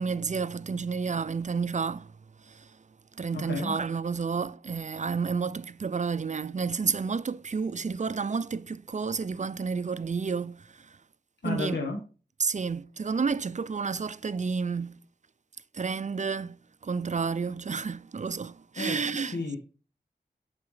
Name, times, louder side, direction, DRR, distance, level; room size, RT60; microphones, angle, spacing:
voice 1, 0.0-2.1 2.4-2.7 3.2-11.0 11.4-11.8 12.4-14.9 15.7-16.6 16.8-19.4, right 5 dB, 45° right, 0.4 m, -30 dB
voice 2, 3.3-3.7 11.4-12.0 18.8-19.6, left 3 dB, 85° left, 1.3 m, -32 dB
7.2 x 4.8 x 4.8 m
wide cardioid pair, 85°, 17 cm